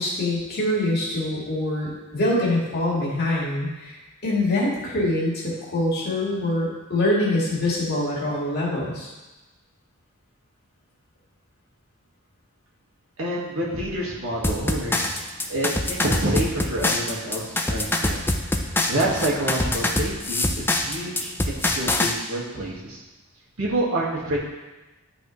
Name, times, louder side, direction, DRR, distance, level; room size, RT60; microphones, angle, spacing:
voice 1, 0.0-4.0 4.2-9.1, left 1 dB, 50° left, -5 dB, 2.1 m, -24 dB
voice 2, 13.2-15.0 15.5-18.2 18.9-23.0 23.6-24.4, right 1 dB, 70° right, -4 dB, 1.7 m, -27 dB
sound 1, 14.4-22.1, left 2 dB, 10° left, 0.4 m, -24 dB
11.0 x 4.1 x 3.1 m, 1.1 s
head